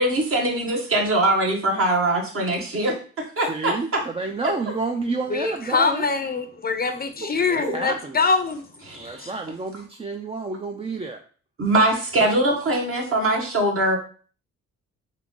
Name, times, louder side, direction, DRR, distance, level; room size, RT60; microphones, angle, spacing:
voice 1, 0.0-4.0 7.6-7.7 8.9-9.3 11.6-14.0, right 1 dB, 45° right, 1 dB, 1.5 m, -22 dB
voice 2, 3.5-6.1 7.2-8.2 9.0-11.2, right 3 dB, 20° right, 4 dB, 0.5 m, -30 dB
voice 3, 5.3-8.6 9.2-9.3, left 4 dB, 30° left, 7 dB, 0.6 m, -24 dB
3.7 x 3.5 x 3.7 m, 0.42 s
cardioid pair, 90°, 30 cm